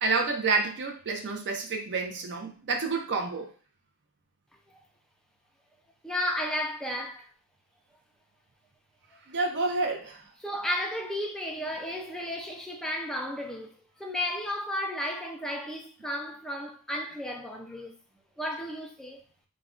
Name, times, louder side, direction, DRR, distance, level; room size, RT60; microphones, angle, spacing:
voice 1, 0.0-3.5 9.3-10.2, right 4 dB, 50° right, 0.5 m, -29 dB
voice 2, 6.0-7.3 9.1-9.2 10.4-13.7 14.0-18.0 18.4-19.2, left 1 dB, ahead, 0.3 m, -33 dB
2.4 x 2.1 x 3.6 m
head